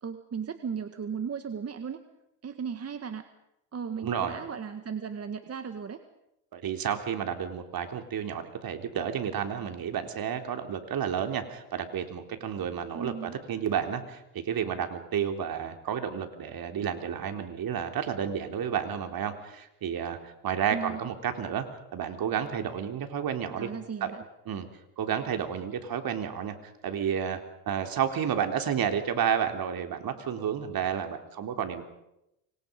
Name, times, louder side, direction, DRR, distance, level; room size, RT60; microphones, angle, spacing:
voice 1, 0.0-2.0 2.4-3.3 3.7-6.0 12.9-13.4 20.7-21.0 23.5-24.2, right 6 dB, 35° right, 8 dB, 1.8 m, -36 dB
voice 2, 4.0-4.4 6.5-21.7 21.9-23.7 24.0-24.1 24.5-24.7 25.0-27.4 27.7-31.8, right 8 dB, 50° right, 6 dB, 3.7 m, -31 dB
29.0 x 24.5 x 5.4 m, 0.85 s
supercardioid pair, 90°, 44 cm